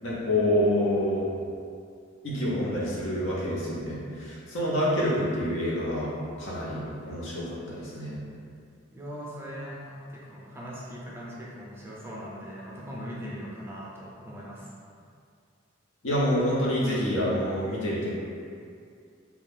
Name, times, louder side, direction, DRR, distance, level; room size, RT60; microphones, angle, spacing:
voice 1, 0.0-1.3 2.2-6.1 6.4-8.1 16.0-18.1, equal, 70° left, -7 dB, 0.8 m, -27 dB
voice 2, 8.9-14.7, equal, 10° right, -6 dB, 0.4 m, -40 dB
2.6 x 2.3 x 3.5 m, 2.3 s
head